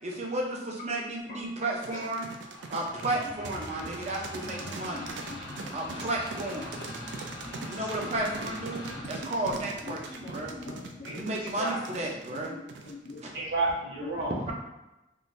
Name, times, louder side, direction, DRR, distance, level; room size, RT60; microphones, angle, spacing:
voice 1, 0.0-2.3 2.7-5.0 5.7-6.7 7.7-10.6 11.1-12.5 13.2-13.3, right 1 dB, 40° right, -1 dB, 0.6 m, -33 dB
voice 2, 1.3-2.1 2.7-3.1 3.8-3.9 4.6-5.4 5.8-6.0 7.2-7.9 8.7-9.1 9.8-9.9 10.2-11.6 12.3-13.4 14.0-14.1, left 3 dB, 45° left, -2 dB, 0.4 m, -46 dB
sound 1, 1.8-13.3, right 4 dB, 85° right, 0.4 m, -41 dB
sound 2, 2.4-11.7, left 1 dB, 85° left, 1.2 m, -42 dB
voice 3, 10.0-10.4 11.0-11.1 11.4-11.8 13.3-14.5, right 2 dB, 70° right, -7 dB, 1.2 m, -32 dB
3.7 x 2.5 x 2.5 m, 0.97 s
head